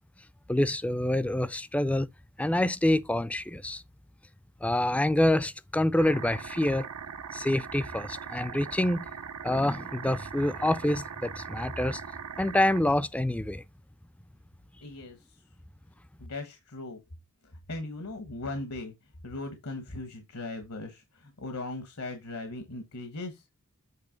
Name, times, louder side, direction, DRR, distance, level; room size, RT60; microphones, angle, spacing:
voice 1, 0.5-2.1 2.4-3.8 4.6-6.9 7.3-9.1 9.4-12.0 12.4-13.6, left 1 dB, 5° left, 0.3 m, -26 dB
sound 1, 6.0-12.8, right 7 dB, 90° right, 0.6 m, -40 dB
voice 2, 14.8-15.4 16.2-17.0 17.7-18.9 19.2-23.6, left 2 dB, 75° left, 1.2 m, -38 dB
8.1 x 3.1 x 5.0 m
head